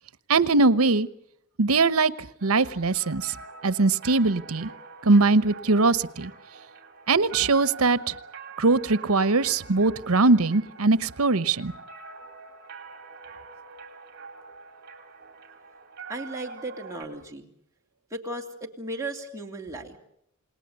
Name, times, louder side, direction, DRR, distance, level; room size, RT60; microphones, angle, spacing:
voice 1, 0.3-1.1 1.6-2.1 2.4-3.3 3.6-4.7 5.0-6.3 7.1-8.1 8.6-11.7, right 3 dB, 85° right, 16 dB, 1.0 m, -21 dB
sound 1, 2.4-17.0, right 4 dB, 45° right, 4.6 m, -45 dB
voice 2, 16.1-17.5 18.1-20.0, right 2 dB, 15° right, 0 dB, 2.8 m, -35 dB
28.5 x 19.5 x 8.2 m, 0.74 s
head